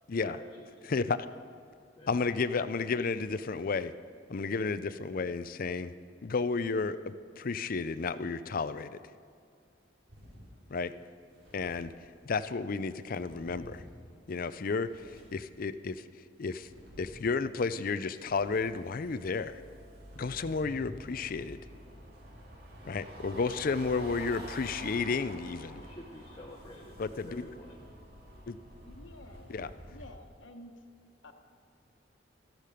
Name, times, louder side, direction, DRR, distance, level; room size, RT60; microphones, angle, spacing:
voice 1, 0.2-0.9 2.0-2.1 25.7-27.0 27.3-27.8, left 1 dB, 25° left, 1 dB, 0.8 m, -49 dB
voice 2, 0.8-1.2 2.1-3.9 4.3-5.9 6.2-9.0 10.7-10.9 11.5-11.9 12.2-13.8 14.3-16.0 16.4-16.7 17.0-19.6 20.2-21.6 22.9-25.8 27.0-27.5 28.5-28.6 29.5-29.7, left 4 dB, 50° left, 13 dB, 0.5 m, -32 dB
sound 1, 10.1-12.5 12.9-15.8 16.3-19.3 19.8-29.9, equal, 85° right, 3.9 m, -55 dB
sound 2, 18.5-30.1, right 1 dB, 55° right, 2.1 m, -49 dB
voice 3, 28.9-29.5 29.9-30.9 31.2-31.3, left 1 dB, 90° left, 5 dB, 1.3 m, -51 dB
13.5 x 12.5 x 5.0 m, 2.4 s
head